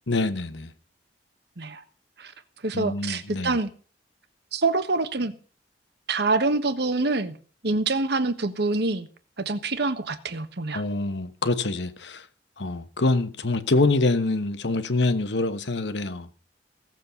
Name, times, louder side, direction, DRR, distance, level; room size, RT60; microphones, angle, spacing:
voice 1, 0.1-0.7 2.7-3.6 10.7-12.3 12.6-16.3, left 2 dB, 70° left, 1.2 m, -25 dB
voice 2, 2.6-3.7 4.5-5.3 6.1-7.4 7.6-9.1 9.4-10.8, right 3 dB, 65° right, 1.3 m, -25 dB
16.5 x 7.5 x 7.0 m
head